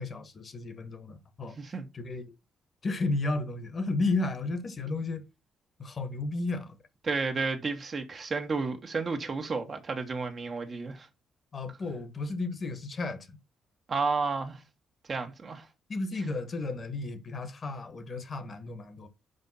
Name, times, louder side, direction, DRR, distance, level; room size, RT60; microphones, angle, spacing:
voice 1, 0.0-1.6 1.9-2.3 2.8-5.3 5.8-6.8 11.5-13.4 15.9-19.1, left 3 dB, 40° left, 1.5 m, -33 dB
voice 2, 7.0-11.1 13.9-14.6 15.1-15.7, right 4 dB, 40° right, 1.5 m, -31 dB
5.5 x 5.2 x 5.5 m
cardioid pair, 90°, 0 cm